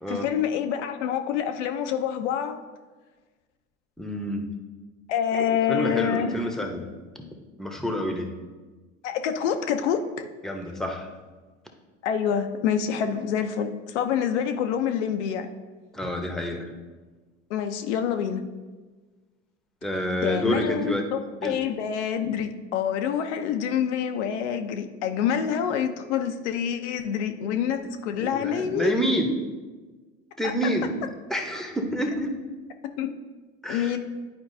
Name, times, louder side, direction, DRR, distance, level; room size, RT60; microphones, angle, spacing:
voice 1, 0.1-2.6 5.1-7.3 9.0-10.3 12.0-15.5 17.5-18.4 20.2-28.9 30.4-30.5 33.0-33.1 33.7-34.0, left 8 dB, 80° left, 8 dB, 0.7 m, -27 dB
voice 2, 4.0-4.4 5.3-6.8 7.6-8.3 10.4-11.1 15.9-16.7 19.8-21.0 21.4-21.6 28.1-29.3 30.4-30.9 31.3-32.3 33.6-34.0, equal, ahead, 3 dB, 0.9 m, -28 dB
10.5 x 4.6 x 2.7 m, 1.3 s
hypercardioid pair, 80°, 35 cm